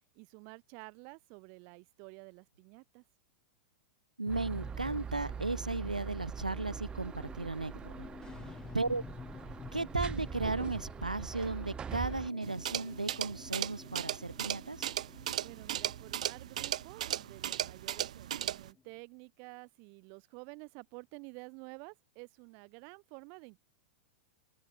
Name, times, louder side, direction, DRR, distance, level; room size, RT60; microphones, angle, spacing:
voice 1, 0.1-3.0 8.2-8.5 15.4-23.6, right 37 dB, 45° right, 4.0 m, -51 dB
voice 2, 4.2-8.1 8.7-9.0 9.7-14.9, right 3 dB, 90° right, 2.5 m, -35 dB
sound 1, 4.3-18.9, left 6 dB, 20° left, 3.5 m, -52 dB
sound 2, 4.3-12.3, right 7 dB, 25° right, 4.7 m, -42 dB
sound 3, 12.4-18.7, right 11 dB, 65° right, 1.8 m, -37 dB
figure-of-eight pair, 95°, 4 cm